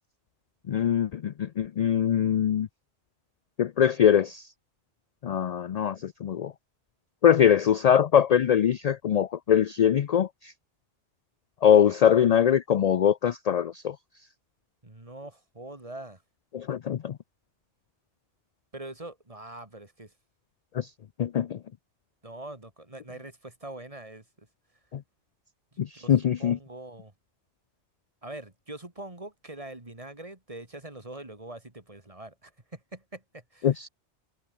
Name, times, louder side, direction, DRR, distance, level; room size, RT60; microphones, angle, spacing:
voice 1, 0.7-2.7 3.6-4.4 5.2-6.5 7.2-10.5 11.6-14.0 16.5-17.2 20.7-20.9 21.2-21.6 24.9-25.0 25.8-26.6 33.6-33.9, left 9 dB, 65° left, 0.4 m, -22 dB
voice 2, 14.8-16.2 18.7-20.1 22.2-24.5 25.7-27.1 28.2-33.8, right 2 dB, 30° right, 2.8 m, -43 dB
omnidirectional pair, 1.2 m